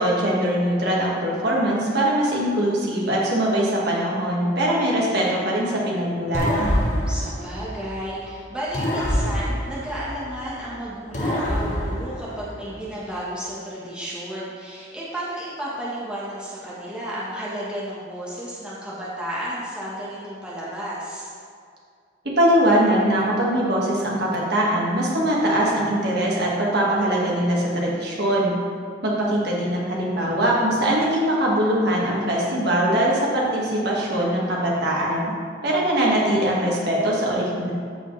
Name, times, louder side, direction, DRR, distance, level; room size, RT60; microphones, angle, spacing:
voice 1, 0.0-6.7 22.3-28.5 29.0-35.3 35.6-37.7, right 1 dB, 55° right, -4 dB, 1.7 m, -22 dB
sound 1, 6.3-8.2 8.7-10.6 11.1-12.9, equal, 40° left, 1.3 m, -26 dB
voice 2, 7.1-21.3, right 1 dB, 5° right, -8 dB, 1.2 m, -32 dB
13.5 x 5.1 x 3.2 m, 2.2 s
head